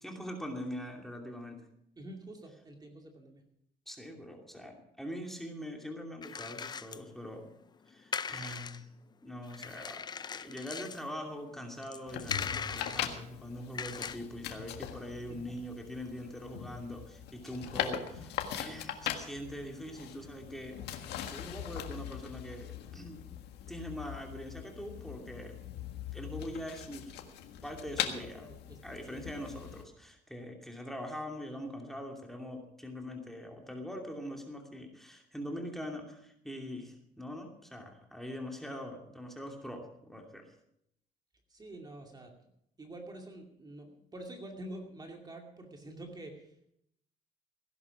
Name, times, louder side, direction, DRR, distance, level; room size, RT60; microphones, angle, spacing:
voice 1, 0.0-1.6 3.9-7.6 7.9-8.9 9.2-20.8 21.3-23.2 23.7-25.5 26.1-27.3 27.6-28.4 28.8-40.5, equal, ahead, 2 dB, 2.7 m, -43 dB
voice 2, 2.0-3.4 15.3-15.4 28.1-29.2 41.5-42.3 42.8-46.7, right 1 dB, 25° right, 3 dB, 2.5 m, -47 dB
sound 1, 6.2-7.7 7.9-8.8 9.4-11.1 11.5-13.3 13.7-14.2, left 6 dB, 25° left, 0.5 m, -39 dB
sound 2, 12.1-29.8, left 10 dB, 80° left, 1.7 m, -41 dB
17.0 x 11.0 x 6.0 m, 0.74 s
cardioid pair, 110°, 17 cm